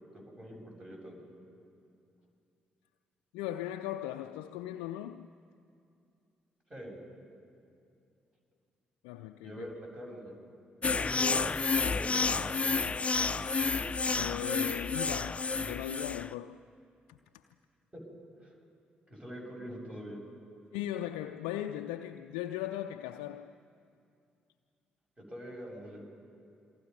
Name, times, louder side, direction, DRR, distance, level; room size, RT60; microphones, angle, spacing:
voice 1, 0.1-1.2 6.7-7.0 9.4-10.3 10.8-11.4 11.8-12.5 18.4-18.5 19.1-20.2 25.2-26.0, equal, 20° right, 7.4 m, -44 dB
voice 2, 3.3-5.3 9.0-9.7 14.1-16.6 17.1-17.4 20.7-23.5, left 13 dB, 70° left, 0.5 m, -38 dB
sound 1, 10.8-16.3, left 4 dB, 25° left, 0.6 m, -30 dB
27.5 x 23.0 x 5.5 m
figure-of-eight pair, 40°, 5 cm